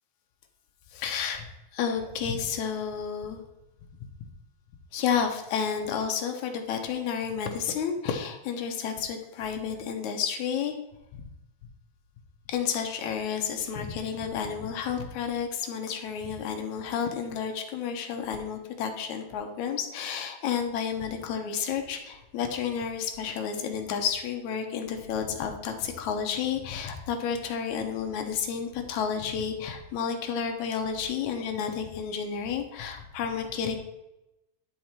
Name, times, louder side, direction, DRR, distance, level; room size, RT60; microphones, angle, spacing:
voice 1, 0.9-1.5 1.7-3.4 4.9-10.7 11.1-11.2 12.5-33.8, left 7 dB, 75° left, 4 dB, 2.1 m, -31 dB
11.0 x 3.8 x 4.4 m, 0.94 s
omnidirectional pair, 3.6 m